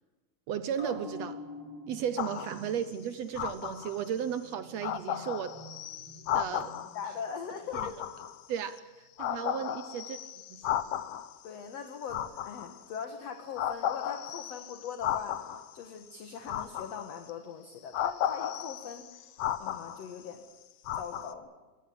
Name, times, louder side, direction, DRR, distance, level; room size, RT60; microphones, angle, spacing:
voice 1, 0.5-1.4 1.9-5.5 6.3-6.8 7.7-7.9 8.5-10.2 10.5-10.8, right 8 dB, 75° right, 12 dB, 1.5 m, -35 dB
sound 1, 0.7-7.7 8.0-8.1, left 1 dB, 30° right, 4.9 m, -48 dB
sound 2, 2.2-2.7 3.3-4.1 4.5-4.6 4.8-7.0 7.7-8.8 9.2-11.4 12.0-13.0 13.6-15.7 16.5-17.3 17.9-20.3 20.8-21.3, left 11 dB, 80° left, 1.3 m, -34 dB
voice 2, 6.9-8.1 9.3-9.7 11.4-15.4 15.7-19.3 19.6-20.4 20.9-21.5, left 7 dB, 55° left, 6 dB, 2.3 m, -41 dB
24.0 x 17.5 x 8.8 m, 1.3 s
omnidirectional pair, 4.0 m